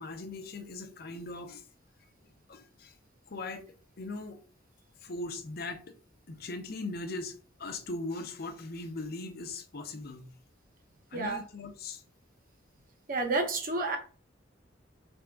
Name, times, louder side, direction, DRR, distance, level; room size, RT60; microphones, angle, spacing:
voice 1, 0.0-1.6 2.5-2.9 3.3-3.6 4.0-4.4 5.0-5.9 6.3-10.3 11.1-12.0, left 2 dB, 55° left, 0.7 m, -39 dB
voice 2, 13.1-14.0, right 3 dB, 45° right, 0.9 m, -30 dB
3.5 x 3.5 x 3.5 m
head